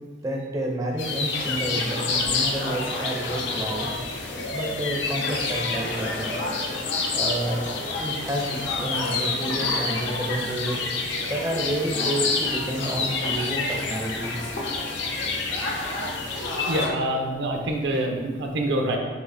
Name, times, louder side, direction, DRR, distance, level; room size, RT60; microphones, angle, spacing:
voice 1, 0.2-3.9 4.5-6.5 7.1-10.8 11.3-14.5, right 1 dB, 20° right, -1 dB, 0.4 m, -30 dB
sound 1, 1.0-16.9, left 4 dB, 70° left, 0.5 m, -29 dB
sound 2, 1.3-16.9, left 1 dB, 85° left, 0.9 m, -35 dB
voice 2, 16.7-19.0, right 1 dB, 65° right, 2 dB, 0.6 m, -26 dB
6.1 x 2.8 x 2.6 m, 1.4 s
head